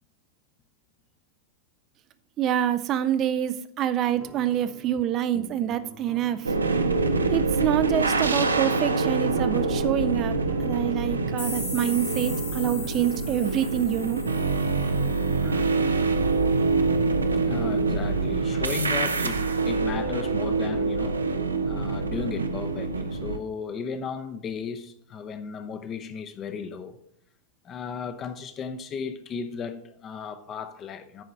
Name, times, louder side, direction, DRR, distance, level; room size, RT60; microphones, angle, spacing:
voice 1, 2.4-6.5 7.3-10.4 10.6-14.2, right 11 dB, 35° right, 0.4 m, -26 dB
sound 1, 4.1-15.7, right 2 dB, 15° right, 0.9 m, -45 dB
sound 2, 6.4-23.4, right 3 dB, 75° right, 0.6 m, -25 dB
sound 3, 11.4-16.0, left 2 dB, 85° left, 3.5 m, -39 dB
voice 2, 17.4-21.3 21.7-27.0 27.6-31.2, left 6 dB, 30° left, 0.7 m, -35 dB
9.1 x 5.0 x 5.4 m
figure-of-eight pair, 90°, 0 cm